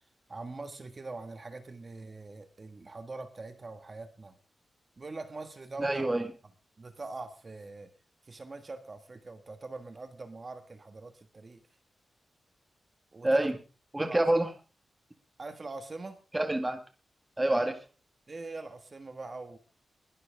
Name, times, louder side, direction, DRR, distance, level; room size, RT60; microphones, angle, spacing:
voice 1, 0.3-4.3 5.0-6.1 6.8-7.9 8.2-11.6 13.1-13.5 14.0-14.2 15.4-16.2 18.3-19.6, right 3 dB, 30° right, 7 dB, 1.6 m, -43 dB
voice 2, 5.8-6.3 13.2-13.6 13.9-14.5 16.3-16.8 17.4-17.8, right 1 dB, 15° right, 6 dB, 1.7 m, -26 dB
21.0 x 12.0 x 3.5 m, 0.33 s
wide cardioid pair, 150°, 0 cm